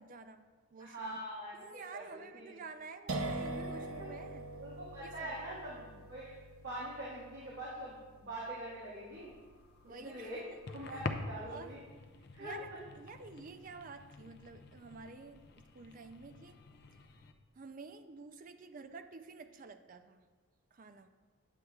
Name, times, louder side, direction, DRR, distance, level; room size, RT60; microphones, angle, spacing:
voice 1, 0.0-1.2 1.5-4.5 5.0-5.4 9.8-10.6 10.9-11.0 11.5-11.7 12.4-12.7 13.0-16.6 17.6-20.2 20.7-21.1, right 4 dB, 40° right, 8 dB, 0.4 m, -50 dB
voice 2, 0.8-2.6 3.6-3.7 4.0-4.1 4.6-6.3 6.6-9.3 9.9-10.4 10.7-11.8 12.3-12.6, right 1 dB, 65° right, -9 dB, 1.8 m, -44 dB
sound 1, 3.1-10.7, right 2 dB, 90° right, 0.7 m, -44 dB
sound 2, 9.1-17.3, left 3 dB, 50° left, 0.5 m, -47 dB
9.8 x 7.8 x 2.3 m, 1.4 s
head